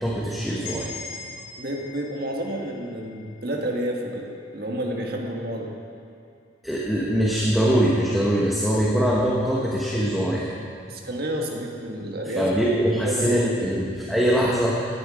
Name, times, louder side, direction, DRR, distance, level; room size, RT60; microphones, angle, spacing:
voice 1, 0.0-0.9 6.6-10.5 12.4-15.0, equal, ahead, -5 dB, 1.1 m, -22 dB
sound 1, 0.6-4.5, left 5 dB, 45° left, 2.8 m, -41 dB
voice 2, 1.6-4.3 4.5-5.7 10.9-12.5 12.9-13.7, right 1 dB, 50° right, 1 dB, 1.7 m, -30 dB
17.0 x 11.0 x 5.0 m, 2.4 s
head